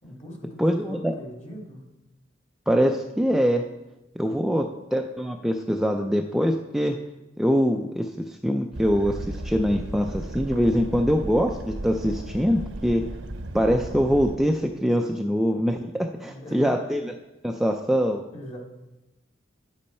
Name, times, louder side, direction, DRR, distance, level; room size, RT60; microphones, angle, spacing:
voice 1, 0.0-1.9 16.2-16.7 18.3-18.6, equal, 35° left, 0 dB, 2.0 m, -41 dB
voice 2, 0.6-1.1 2.7-3.6 4.2-7.0 7.4-13.0 13.5-17.1 17.4-18.2, equal, ahead, 3 dB, 0.4 m, -23 dB
sound 1, 8.7-14.4, right 1 dB, 75° right, 0.8 m, -35 dB
9.5 x 8.4 x 4.3 m, 1.0 s
head